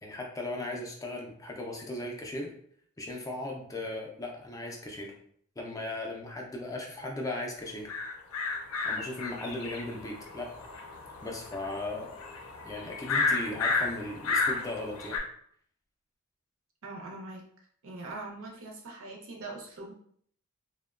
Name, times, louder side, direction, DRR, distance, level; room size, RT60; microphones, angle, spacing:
voice 1, 0.0-2.5 3.0-5.1 5.6-7.9 8.8-10.5 11.2-12.2 12.6-15.2, left 2 dB, 15° left, 0 dB, 0.3 m, -37 dB
sound 1, 7.9-15.2, left 4 dB, 75° left, 0.5 m, -32 dB
voice 2, 16.8-17.5 17.8-19.9, right 2 dB, 65° right, 0 dB, 0.6 m, -42 dB
2.8 x 2.1 x 2.3 m, 0.62 s
head